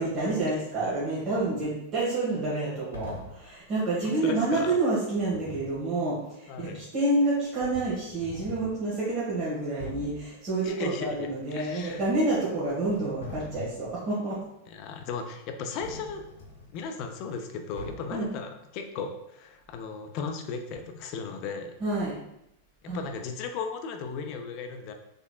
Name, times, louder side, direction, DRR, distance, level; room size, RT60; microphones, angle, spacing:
voice 1, 0.0-14.4 18.1-18.3 21.8-22.1 22.9-23.0, right 2 dB, 40° right, -8 dB, 1.3 m, -28 dB
sound 1, 2.9-3.5 5.2-5.8 7.0-7.1 7.6-8.8 9.3-9.4 9.8-10.3 11.8-12.5 12.8-13.9 15.8-16.8 17.8-18.3, left 2 dB, 75° left, 0.8 m, -43 dB
voice 2, 4.0-4.7 6.5-6.8 10.6-12.0 14.7-16.3 16.7-21.7 22.9-24.9, left 5 dB, 45° left, 5 dB, 0.5 m, -36 dB
3.7 x 3.4 x 2.2 m, 0.83 s
figure-of-eight pair, 95°, 0 cm